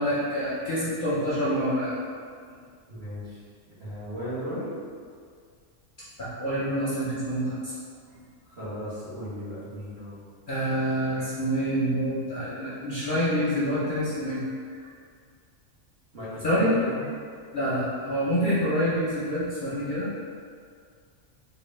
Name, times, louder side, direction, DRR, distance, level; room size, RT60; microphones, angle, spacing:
voice 1, 0.0-2.0 6.2-7.7 10.5-14.4 14.7-14.8 16.4-16.8 17.5-20.1, equal, 50° left, -10 dB, 0.7 m, -27 dB
voice 2, 2.9-3.4 3.8-4.7 8.4-10.2 16.1-17.1, equal, 50° right, -12 dB, 1.6 m, -36 dB
3.7 x 2.4 x 3.2 m, 2.1 s
omnidirectional pair, 1.4 m